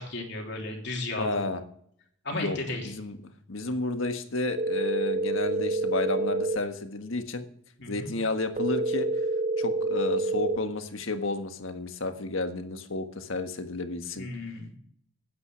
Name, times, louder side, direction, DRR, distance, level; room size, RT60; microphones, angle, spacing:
voice 1, 0.0-1.4 2.2-2.9 7.8-8.1 14.2-14.7, left 2 dB, 55° left, 1 dB, 3.2 m, -34 dB
voice 2, 1.2-1.6 2.3-2.6 2.8-3.2 3.5-7.4 7.9-9.1 9.6-14.3, left 2 dB, 75° left, 7 dB, 1.5 m, -31 dB
sound 1, 4.6-6.6 8.6-10.6, right 2 dB, 35° right, 0.7 m, -28 dB
12.5 x 9.5 x 5.8 m, 0.65 s
head